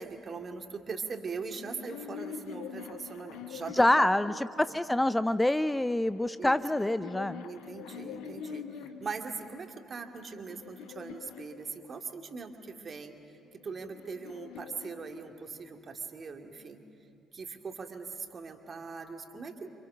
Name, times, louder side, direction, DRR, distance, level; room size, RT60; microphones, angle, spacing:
voice 1, 0.0-4.8 6.4-6.6 7.4-16.8 17.3-19.7, right 5 dB, 40° right, 4 dB, 2.3 m, -41 dB
sound 1, 1.5-4.9 5.8-9.2 9.9-12.3 13.4-15.8, left 8 dB, 70° left, 1.2 m, -45 dB
voice 2, 3.8-7.4, left 1 dB, 10° left, 15 dB, 0.5 m, -26 dB
30.0 x 26.5 x 6.2 m, 2.5 s
figure-of-eight pair, 45°, 0 cm